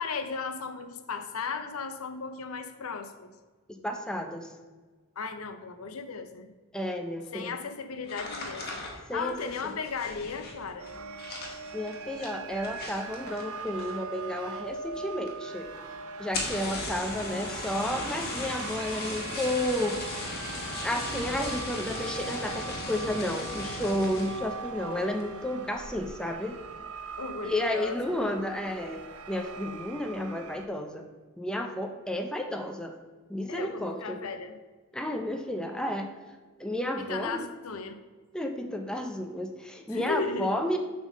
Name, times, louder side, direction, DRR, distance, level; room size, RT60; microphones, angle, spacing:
voice 1, 0.0-3.3 5.2-6.5 7.3-8.8 9.1-10.9 27.2-28.3 33.5-34.5 37.0-38.0 39.9-40.6, left 5 dB, 75° left, 8 dB, 0.7 m, -36 dB
voice 2, 3.8-4.5 6.7-7.5 9.1-9.8 11.7-15.7 16.2-20.3 20.8-26.6 27.4-29.0 29.3-31.0 31.4-32.9 33.3-34.2 34.9-36.1 36.6-37.4 38.3-40.8, left 1 dB, 5° left, 3 dB, 0.5 m, -32 dB
sound 1, 8.0-14.2 14.5-15.0 15.3-15.4 15.6-15.7 16.2-24.5 25.0-25.3 25.7-26.1, left 2 dB, 50° left, 1.4 m, -37 dB
sound 2, 10.8-30.7, right 4 dB, 80° right, 0.6 m, -41 dB
7.3 x 3.7 x 6.2 m, 1.4 s
head